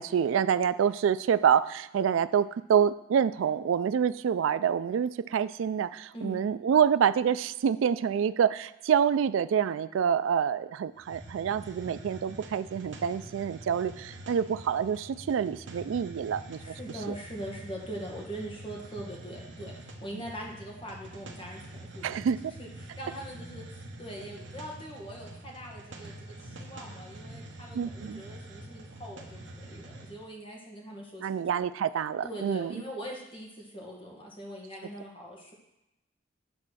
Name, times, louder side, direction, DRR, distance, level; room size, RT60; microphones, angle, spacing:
voice 1, 0.0-16.7 17.1-17.2 22.0-22.4 27.7-28.2 31.2-32.7, right 8 dB, 85° right, 16 dB, 0.3 m, -27 dB
voice 2, 6.1-6.5 16.6-22.1 22.4-31.6 32.2-35.5, equal, 25° left, -1 dB, 1.6 m, -42 dB
Hiss, 11.0-30.2, right 1 dB, 65° right, 1.0 m, -46 dB
8.9 x 4.2 x 6.2 m, 0.90 s
head